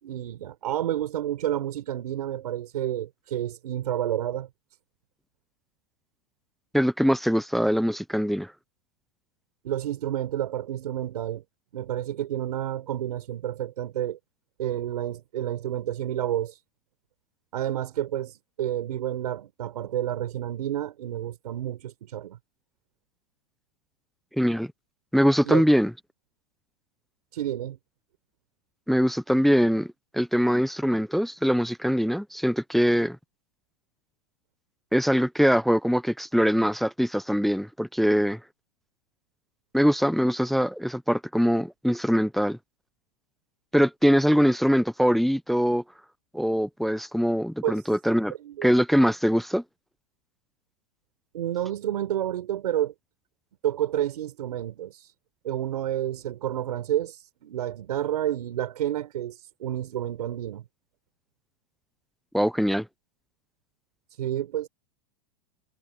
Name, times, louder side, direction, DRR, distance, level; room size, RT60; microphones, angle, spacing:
voice 1, 0.0-4.5 9.6-11.4 11.7-14.2 14.6-16.6 17.5-22.4 25.4-25.7 27.3-27.8 47.6-47.9 48.4-48.7 51.3-52.9 53.6-55.1 55.4-60.6 64.2-64.7, right 12 dB, 90° right, 5.6 m, -30 dB
voice 2, 6.7-8.5 24.4-24.7 25.1-25.9 28.9-33.2 34.9-38.4 39.7-42.6 43.7-45.8 46.3-48.3 48.6-49.6 62.3-62.9, equal, ahead, 0.5 m, -23 dB
supercardioid pair, 135°, 20 cm